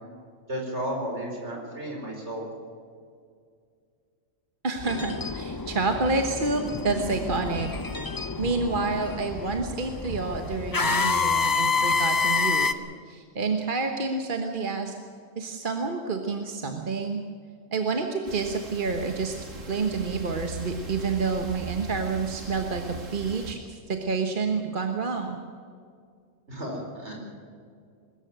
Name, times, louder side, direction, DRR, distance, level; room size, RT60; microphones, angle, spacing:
voice 1, 0.5-2.5 26.5-27.1, equal, 60° right, 0 dB, 4.9 m, -33 dB
voice 2, 4.6-7.7 8.0-14.9 15.3-17.2 17.7-19.3 19.6-25.4, right 4 dB, 40° right, 4 dB, 1.4 m, -29 dB
sound 1, 4.8-12.7, left 4 dB, 25° left, 0.5 m, -28 dB
sound 2, 18.3-23.5, right 2 dB, 75° right, 2.4 m, -39 dB
22.0 x 13.5 x 9.0 m, 2.2 s
omnidirectional pair, 1.3 m